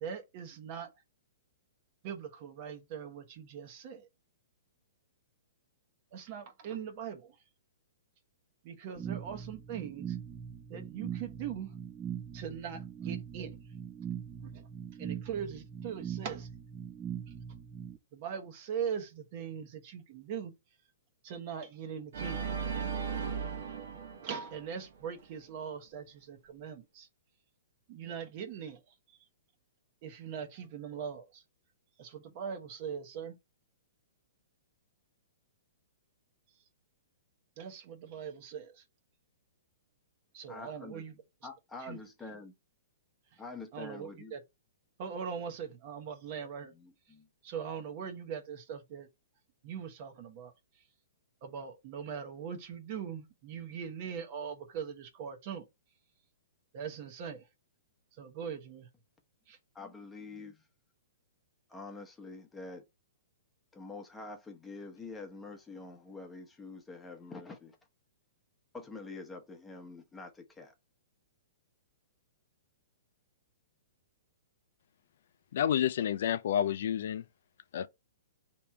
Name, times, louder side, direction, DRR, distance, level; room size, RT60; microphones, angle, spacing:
voice 1, 0.0-0.9 2.0-4.1 6.1-7.3 8.6-10.2 10.7-11.7 12.3-13.6 14.4-14.6 15.0-16.5 18.1-20.5 21.2-22.4 24.2-27.1 27.9-28.8 29.1-29.2 30.0-31.4 32.0-33.4 37.6-38.8 40.3-41.1 41.8-42.0 43.7-44.4 45.0-46.7 47.4-49.1 49.6-50.5 51.4-55.7 56.7-57.4 58.2-58.9 59.5-59.6, right 7 dB, 45° right, 1.0 m, -41 dB
sound 1, 9.0-18.0, right 8 dB, 20° right, 0.5 m, -41 dB
Organ, 22.1-25.2, right 6 dB, 65° right, 1.2 m, -37 dB
voice 2, 40.5-41.0 41.4-42.5 43.4-44.3 46.7-47.3 59.7-60.6 61.7-62.8 63.7-67.8 68.7-70.7, left 3 dB, 10° left, 0.9 m, -46 dB
voice 3, 75.5-77.2 77.7-77.9, left 10 dB, 65° left, 0.3 m, -29 dB
3.4 x 3.0 x 4.5 m
hypercardioid pair, 130°, 0 cm